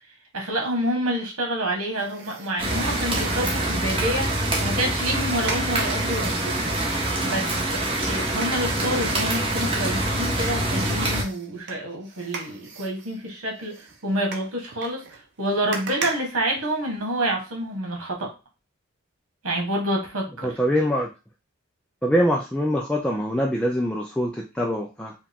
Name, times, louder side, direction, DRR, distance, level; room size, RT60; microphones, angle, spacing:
voice 1, 0.3-15.0 15.4-18.3 19.4-20.6, right 1 dB, 70° right, 1 dB, 1.5 m, -28 dB
sound 1, 2.0-3.8 5.1-6.8 8.0-10.5 11.0-17.2 17.6-17.7, right 4 dB, 55° right, 0.8 m, -39 dB
sound 2, 2.6-11.2, right 1 dB, 25° right, 1.1 m, -25 dB
voice 2, 20.4-21.1 22.0-25.1, equal, 5° left, 0 dB, 0.4 m, -24 dB
4.8 x 2.4 x 3.5 m, 0.30 s
head